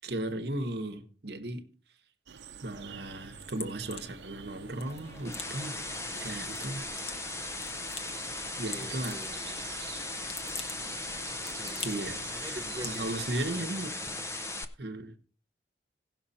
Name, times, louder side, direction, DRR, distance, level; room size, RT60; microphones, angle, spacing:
voice 1, 0.0-1.6 2.6-5.8 6.1-6.9 8.6-9.2 11.8-12.5 12.8-13.9 14.8-15.1, right 1 dB, 65° right, 1.1 m, -36 dB
sound 1, 2.3-13.6, right 6 dB, 85° right, 0.7 m, -49 dB
sound 2, 2.8-13.5, left 4 dB, 35° left, 1.1 m, -47 dB
sound 3, 4.9-14.6, left 2 dB, 15° left, 0.6 m, -38 dB
voice 2, 8.7-9.7 11.6-11.9 12.3-13.1 13.5-13.7 14.0-14.2, equal, 15° right, 0.8 m, -45 dB
16.5 x 6.1 x 4.2 m
head